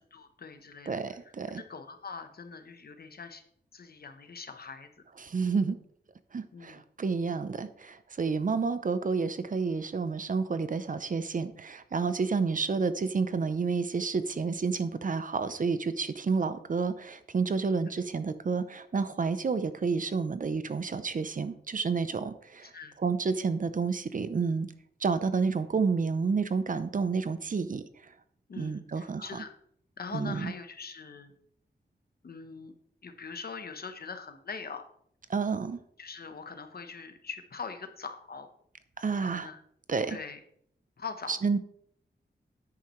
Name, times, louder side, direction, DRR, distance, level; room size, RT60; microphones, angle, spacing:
voice 1, 0.1-3.4 3.7-5.0 6.5-6.8 8.4-8.6 22.6-22.9 28.5-29.5 30.0-31.3 32.2-32.7 33.0-34.9 36.0-38.5 39.2-39.6 40.1-40.4 41.0-41.4, left 5 dB, 60° left, 8 dB, 1.0 m, -42 dB
voice 2, 0.9-1.6 5.2-5.8 6.3-22.7 23.0-24.7 25.0-27.8 28.6-29.2 30.1-30.5 35.3-35.8 39.0-39.5 39.9-40.2 41.3-41.6, right 5 dB, 45° right, 12 dB, 0.6 m, -30 dB
10.0 x 8.6 x 3.2 m, 0.67 s
wide cardioid pair, 120°, 18 cm